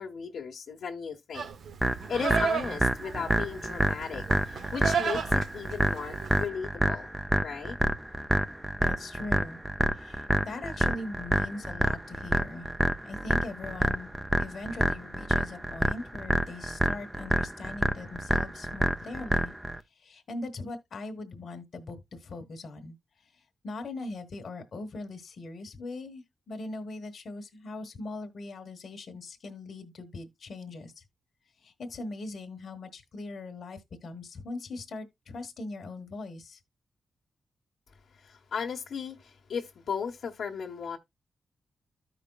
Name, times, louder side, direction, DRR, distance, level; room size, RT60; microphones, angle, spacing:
voice 1, 0.0-1.5 2.1-7.1 7.4-7.8 10.0-10.1 38.2-41.0, left 6 dB, 80° left, 1.1 m, -36 dB
Livestock farm animals working animals, 1.3-6.5, right 6 dB, 80° right, 0.7 m, -34 dB
sound 1, 1.8-19.8, right 1 dB, 10° right, 0.5 m, -28 dB
voice 2, 8.8-9.6 9.9-12.7 13.0-14.1 14.4-19.5 20.0-23.0 23.6-31.0 31.6-36.6, left 2 dB, 60° left, 1.2 m, -40 dB
13.5 x 5.1 x 2.3 m
wide cardioid pair, 105°, 0 cm